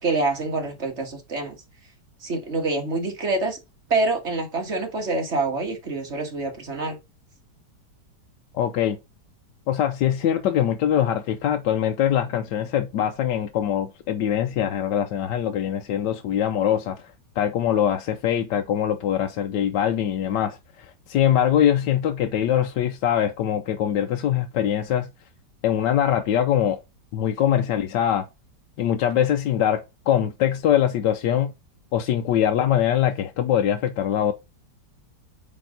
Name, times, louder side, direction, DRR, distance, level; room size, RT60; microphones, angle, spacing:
voice 1, 0.0-1.6 2.2-3.6 3.9-7.0, right 3 dB, 40° right, 1.9 m, -26 dB
voice 2, 8.5-9.0 9.7-17.0 17.4-25.1 25.6-26.8 27.1-28.3 28.8-31.5 31.9-34.3, left 10 dB, 80° left, 1.3 m, -23 dB
8.4 x 3.5 x 3.9 m
omnidirectional pair, 1.9 m